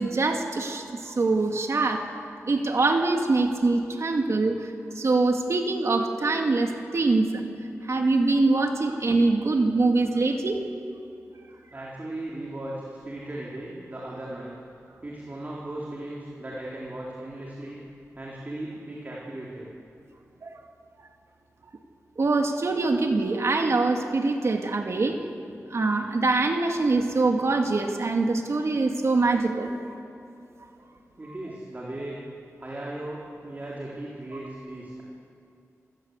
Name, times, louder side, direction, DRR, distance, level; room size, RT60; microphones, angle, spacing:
voice 1, 0.0-2.0 2.5-7.4 7.8-10.6 20.4-20.7 22.2-25.2 25.7-29.7 31.3-31.4, right 3 dB, 60° right, 3 dB, 2.2 m, -24 dB
voice 2, 11.7-14.6 15.0-17.8 18.1-19.7 30.7-30.8 31.2-32.2 32.6-35.0, right 1 dB, 30° right, -4 dB, 4.1 m, -37 dB
27.5 x 19.5 x 8.2 m, 2.5 s
wide cardioid pair, 110°, 5 cm